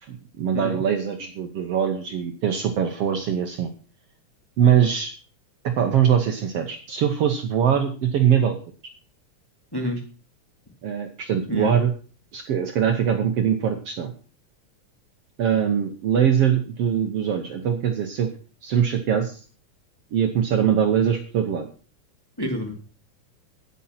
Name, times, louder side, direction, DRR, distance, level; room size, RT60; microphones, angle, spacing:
voice 1, 0.0-3.7 4.6-5.1 5.6-8.6 10.8-11.9 12.3-14.1 15.4-18.3 18.6-19.4 20.1-21.7, right 8 dB, 60° right, 5 dB, 1.8 m, -22 dB
voice 2, 22.4-22.7, equal, 10° left, 1 dB, 2.0 m, -27 dB
10.0 x 9.9 x 5.8 m, 0.39 s
omnidirectional pair, 3.5 m